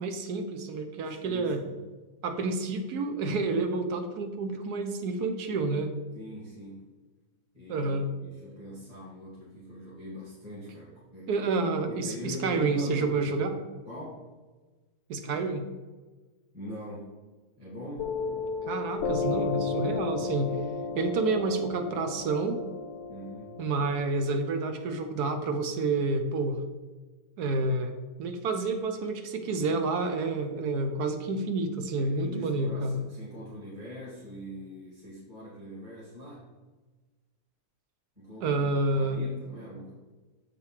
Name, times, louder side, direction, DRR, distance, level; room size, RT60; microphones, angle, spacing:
voice 1, 0.0-1.6 2.2-5.9 7.7-8.1 11.3-13.6 15.1-15.7 18.7-20.5 20.9-22.6 23.6-26.6 27.4-33.0 38.4-39.2, right 3 dB, 80° right, 7 dB, 1.2 m, -29 dB
voice 2, 1.0-1.9 6.1-6.9 7.5-11.3 11.9-13.3 13.8-14.3 16.5-17.1 17.6-18.2 23.1-23.6 32.0-36.5 38.2-38.6 39.0-39.9, equal, 25° right, -7 dB, 2.2 m, -42 dB
Piano, 18.0-25.0, left 4 dB, 75° left, 1.1 m, -33 dB
6.9 x 6.5 x 3.2 m, 1.3 s
omnidirectional pair, 1.7 m